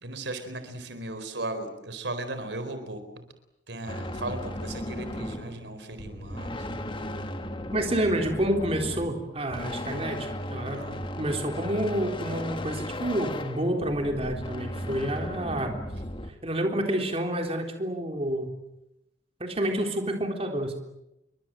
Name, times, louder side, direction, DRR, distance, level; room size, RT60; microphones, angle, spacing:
voice 1, 0.0-3.3 3.7-6.8 10.7-11.0, right 2 dB, 70° right, 10 dB, 4.3 m, -37 dB
sound 1, 3.9-16.3, left 1 dB, 30° left, 1.9 m, -36 dB
voice 2, 7.7-10.8 11.2-15.8 16.4-18.5 19.4-20.8, right 1 dB, 35° right, 3 dB, 3.7 m, -29 dB
29.5 x 24.0 x 7.7 m, 0.87 s
head